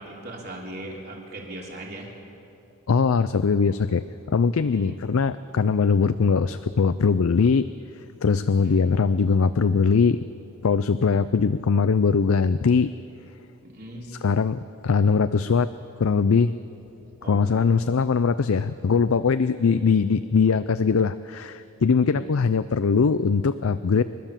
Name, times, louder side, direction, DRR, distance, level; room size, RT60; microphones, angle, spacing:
voice 1, 0.0-2.1 4.7-5.1 8.6-8.8 13.6-14.1 17.2-17.6 19.6-19.8 22.0-22.3, right 1 dB, 45° right, -2 dB, 3.6 m, -39 dB
voice 2, 2.9-7.7 8.2-10.2 10.6-12.9 14.1-15.7 16.0-16.6 17.3-24.0, left 5 dB, 75° left, 12 dB, 0.5 m, -21 dB
29.5 x 12.0 x 7.4 m, 2.7 s
head